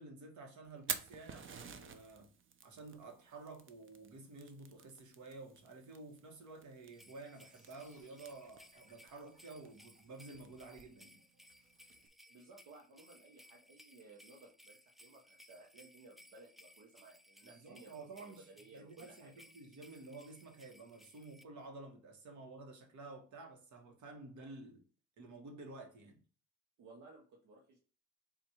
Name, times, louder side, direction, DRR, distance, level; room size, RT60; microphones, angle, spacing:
voice 1, 0.0-2.3 2.6-11.2 17.4-18.5 18.7-24.8 25.2-26.2, right 3 dB, 70° right, 1.3 m, -52 dB
Fire, 0.6-12.1, right 6 dB, 45° right, 0.6 m, -50 dB
sound 1, 6.9-21.4, left 1 dB, ahead, 0.3 m, -63 dB
sound 2, 7.3-13.4, right 1 dB, 25° right, 1.6 m, -72 dB
voice 2, 12.3-19.5 26.8-27.8, right 3 dB, 85° right, 0.9 m, -59 dB
4.2 x 2.5 x 4.3 m
cardioid pair, 90°, 30 cm